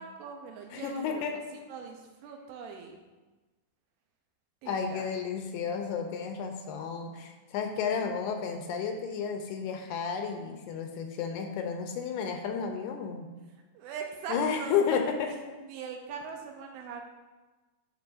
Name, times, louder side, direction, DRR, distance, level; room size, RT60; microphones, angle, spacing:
voice 1, 0.0-1.2 1.7-3.0 4.6-5.1 13.7-14.7 15.2-15.4 15.6-17.0, right 5 dB, 80° right, 2 dB, 2.6 m, -41 dB
voice 2, 0.7-1.4 4.7-13.3 14.3-15.6, left 6 dB, 80° left, 4 dB, 2.5 m, -32 dB
14.5 x 5.4 x 2.6 m, 1.2 s
omnidirectional pair, 4.9 m